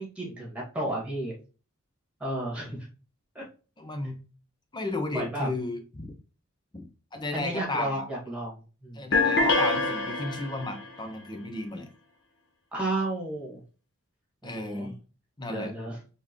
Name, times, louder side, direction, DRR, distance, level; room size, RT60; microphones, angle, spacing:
voice 1, 0.0-1.3 2.2-2.9 3.4-3.5 5.1-5.5 7.3-9.1 12.7-13.6 14.4-14.9 15.5-16.0, right 1 dB, 5° right, -3 dB, 1.9 m, -32 dB
voice 2, 3.8-4.2 4.7-6.1 6.7-6.9 7.1-8.0 8.9-11.9 14.4-15.0 15.4-15.7, left 2 dB, 20° left, 6 dB, 0.7 m, -34 dB
sound 1, 9.1-10.9, left 3 dB, 55° left, 1.3 m, -25 dB
4.5 x 3.5 x 3.0 m, 0.34 s
head